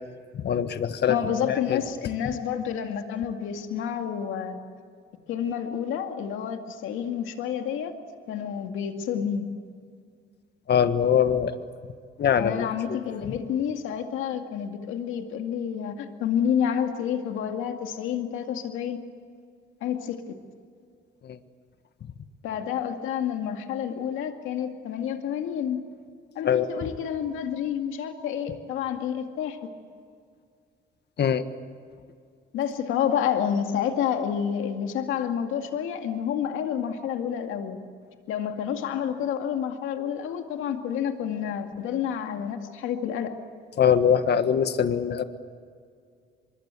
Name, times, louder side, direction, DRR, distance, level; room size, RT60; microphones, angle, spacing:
voice 1, 0.3-1.1 1.5-1.8 10.7-11.5 12.2-12.7 21.2-21.4 26.4-26.7 31.2-31.4 43.8-45.2, left 8 dB, 60° left, 10 dB, 1.5 m, -22 dB
voice 2, 1.1-4.6 5.3-7.9 8.3-9.5 12.4-19.0 19.8-20.3 22.4-25.8 26.4-29.6 32.5-37.8 38.3-43.4, left 8 dB, 90° left, 5 dB, 2.3 m, -29 dB
24.5 x 22.0 x 8.3 m, 2.2 s
cardioid pair, 90°, 20 cm